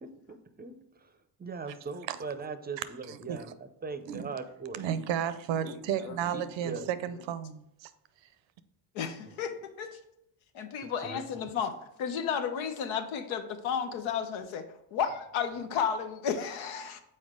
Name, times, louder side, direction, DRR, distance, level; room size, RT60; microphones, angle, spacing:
voice 1, 0.0-5.0 6.3-6.9 9.2-9.4 10.8-11.2, right 4 dB, 20° right, 9 dB, 0.5 m, -41 dB
voice 2, 3.1-3.5 4.1-4.3 4.7-6.8 7.0-7.9, right 9 dB, 75° right, 14 dB, 0.6 m, -33 dB
voice 3, 5.5-6.2 6.6-6.8 8.9-10.0 10.5-17.0, left 7 dB, 90° left, 8 dB, 0.8 m, -33 dB
6.4 x 4.4 x 3.7 m, 0.79 s
cardioid pair, 80°, 46 cm